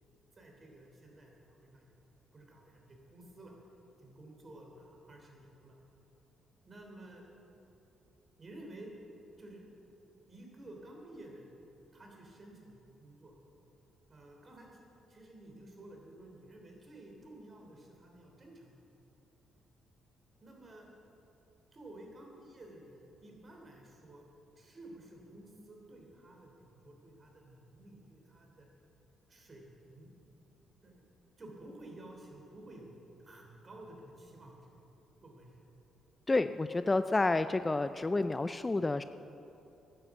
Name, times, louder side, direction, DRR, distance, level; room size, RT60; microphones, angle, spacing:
voice 1, 0.3-2.0 2.3-3.5 4.0-5.8 6.6-7.2 8.4-8.9 9.4-9.6 10.3-11.5 11.9-13.3 14.1-14.8 15.1-18.7 20.4-20.9 21.7-24.2 24.6-28.7 29.3-30.1 30.8-31.0 31.4-32.9 33.2-34.9 35.2-35.7, right 1 dB, 35° right, 0 dB, 3.2 m, -52 dB
voice 2, 36.3-39.0, left 2 dB, 20° left, 11 dB, 0.3 m, -29 dB
11.0 x 9.5 x 8.2 m, 2.9 s
cardioid pair, 90°, 0 cm